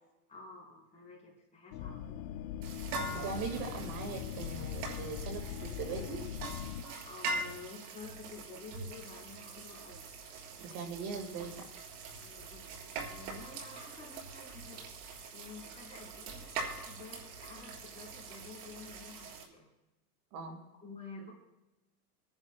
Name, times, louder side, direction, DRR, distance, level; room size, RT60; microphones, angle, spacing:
voice 1, 0.3-2.4 7.0-10.1 12.2-14.8 15.3-19.7 20.7-21.3, left 4 dB, 15° left, -3 dB, 4.3 m, -50 dB
sound 1, 1.7-6.8, left 10 dB, 70° left, 0.8 m, -41 dB
sound 2, 2.6-19.4, right 3 dB, 75° right, 3.5 m, -43 dB
voice 2, 2.9-6.2 10.6-11.7 20.3-20.6, right 5 dB, 45° right, 4 dB, 2.0 m, -40 dB
28.0 x 11.0 x 2.3 m, 1.0 s
supercardioid pair, 145°, 46 cm